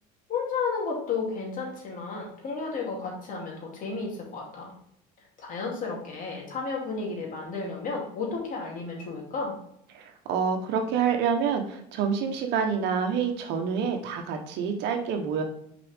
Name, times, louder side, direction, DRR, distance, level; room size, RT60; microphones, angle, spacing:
voice 1, 0.3-4.7 5.4-9.6, left 4 dB, 45° left, -2 dB, 2.9 m, -32 dB
voice 2, 9.9-15.4, right 6 dB, 65° right, 4 dB, 1.3 m, -27 dB
6.6 x 5.1 x 3.6 m, 0.73 s
supercardioid pair, 110°, 19 cm